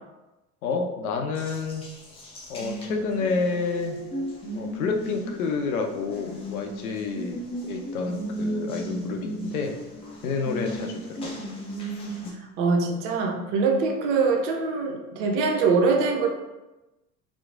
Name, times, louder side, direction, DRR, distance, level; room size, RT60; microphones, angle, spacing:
voice 1, 0.6-1.8 2.5-4.0 4.5-9.8 10.2-11.3, left 4 dB, 70° left, 4 dB, 0.5 m, -29 dB
Water tap faucet, 1.3-12.3, right 1 dB, 15° left, 0.3 m, -35 dB
voice 2, 12.6-16.3, right 4 dB, 50° right, 2 dB, 0.5 m, -23 dB
2.9 x 2.0 x 2.4 m, 1.0 s
figure-of-eight pair, 75°, 45 cm